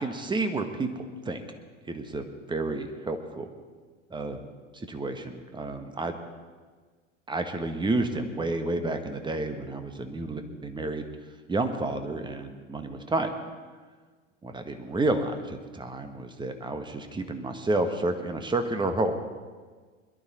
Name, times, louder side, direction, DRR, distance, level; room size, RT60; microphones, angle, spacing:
voice 1, 0.0-1.4 1.9-3.5 4.1-4.4 4.7-6.2 7.3-11.0 11.5-13.3 14.4-19.2, right 2 dB, 10° right, 7 dB, 1.5 m, -30 dB
21.5 x 12.0 x 4.3 m, 1.5 s
hypercardioid pair, 90°, 37 cm